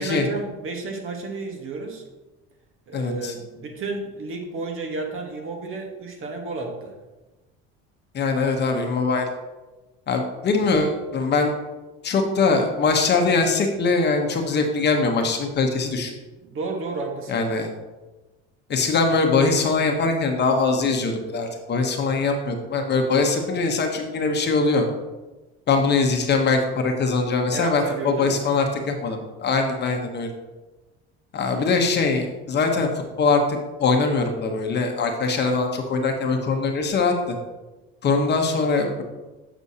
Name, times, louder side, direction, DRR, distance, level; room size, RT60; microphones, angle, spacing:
voice 1, 0.0-2.0 2.9-6.9 16.4-17.4 27.4-28.4, right 3 dB, 45° right, 3 dB, 1.2 m, -32 dB
voice 2, 2.9-3.3 8.1-9.3 10.1-11.6 12.0-16.1 17.3-17.7 18.7-24.9 25.7-30.3 31.3-32.9 33.2-37.3 38.0-39.0, left 4 dB, 35° left, 3 dB, 0.9 m, -22 dB
7.9 x 6.1 x 2.8 m, 1.1 s
cardioid pair, 115°, 29 cm